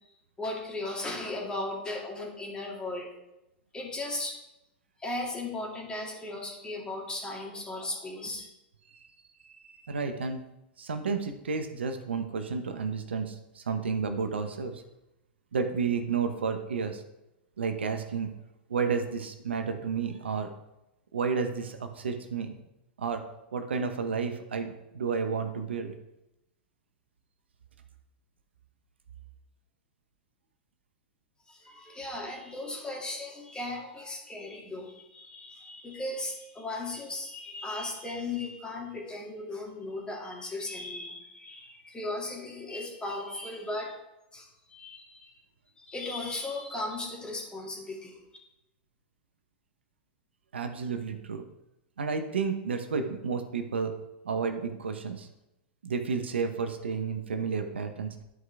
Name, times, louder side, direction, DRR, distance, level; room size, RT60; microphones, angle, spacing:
voice 1, 0.4-3.1 3.7-4.4 5.0-8.5 31.5-43.9 44.3-45.3 45.8-48.2, left 2 dB, 15° left, -1 dB, 2.3 m, -37 dB
voice 2, 9.5-10.4 10.8-14.8 15.5-17.0 17.6-18.3 18.7-20.5 21.1-22.6 23.0-23.2 23.5-25.9 50.5-51.4 52.0-53.9 54.2-55.3 55.8-58.2, right 5 dB, 85° right, 7 dB, 0.8 m, -31 dB
11.0 x 4.8 x 3.4 m, 0.91 s
hypercardioid pair, 105°, 6 cm